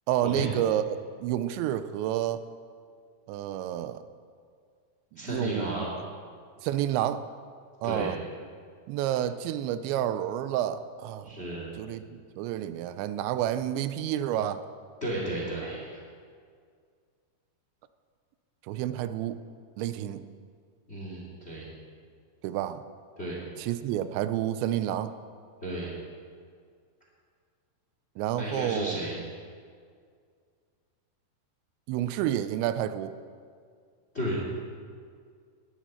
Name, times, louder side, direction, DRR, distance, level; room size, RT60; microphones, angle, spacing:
voice 1, 0.1-0.8 1.2-2.4 3.3-4.0 5.2-5.9 6.6-7.2 7.8-8.2 8.9-11.4 11.8-14.6 18.7-19.4 19.8-20.3 22.4-22.8 23.6-25.1 28.2-29.0 31.9-33.2, right 11 dB, 85° right, 12 dB, 2.9 m, -29 dB
voice 2, 5.2-5.9 7.8-8.1 11.2-11.7 15.0-16.0 20.9-21.7 23.2-23.4 25.6-25.9 28.3-29.2 34.1-34.4, right 1 dB, 20° left, -4 dB, 1.9 m, -33 dB
20.0 x 10.5 x 4.4 m, 2.1 s
omnidirectional pair, 5.1 m